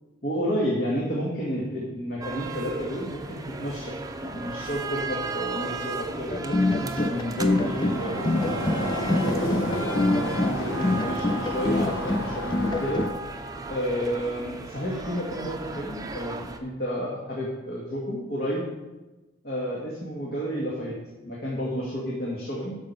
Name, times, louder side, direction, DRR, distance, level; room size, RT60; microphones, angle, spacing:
voice 1, 0.2-13.0 13.7-18.6 19.4-21.0 21.2-22.8, equal, 50° left, -5 dB, 2.4 m, -31 dB
sound 1, 2.2-16.6, right 3 dB, 20° right, 0.8 m, -36 dB
sound 2, 6.3-13.1, left 2 dB, 25° left, 0.4 m, -25 dB
sound 3, 7.3-13.1, equal, 70° left, 1.7 m, -31 dB
12.5 x 5.0 x 6.9 m, 1.1 s
head